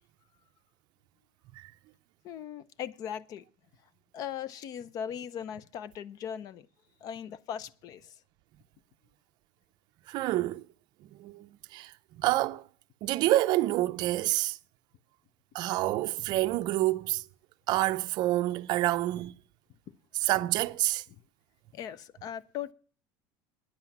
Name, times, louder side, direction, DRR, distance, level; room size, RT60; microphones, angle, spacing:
voice 1, 2.2-3.4 4.1-6.7 7.0-8.2 20.4-20.5 21.1-21.2 21.7-22.7, left 9 dB, 35° left, 0.5 m, -39 dB
voice 2, 10.1-10.6 11.1-12.7 13.0-14.6 15.5-17.2 17.7-19.3 20.2-21.0, right 16 dB, 40° right, 0.5 m, -28 dB
10.0 x 7.7 x 7.1 m
cardioid pair, 165°, 11 cm